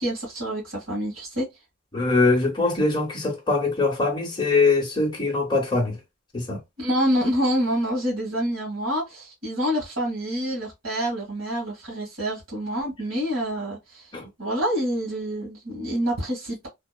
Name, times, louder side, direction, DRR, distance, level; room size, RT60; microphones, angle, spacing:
voice 1, 0.0-1.4 6.8-14.1 14.4-16.7, equal, 70° right, 1.5 m, -27 dB
voice 2, 1.9-6.0 6.3-6.6 14.1-14.3, left 3 dB, 20° left, 0.9 m, -22 dB
2.8 x 2.1 x 2.3 m
head